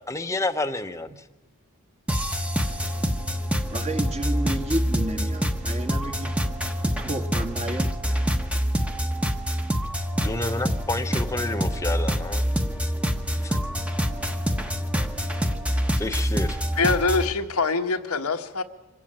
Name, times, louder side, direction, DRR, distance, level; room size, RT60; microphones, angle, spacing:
voice 1, 0.1-1.1 10.2-12.5 13.4-13.6 16.0-16.6, left 2 dB, 15° left, 7 dB, 0.9 m, -29 dB
sound 1, 2.1-17.3, equal, 5° right, 1.2 m, -26 dB
voice 2, 3.7-6.3 7.0-8.2, right 1 dB, 30° right, 5 dB, 1.7 m, -31 dB
voice 3, 16.7-18.6, left 4 dB, 90° left, 5 dB, 1.5 m, -24 dB
25.5 x 16.5 x 8.9 m, 1.2 s
head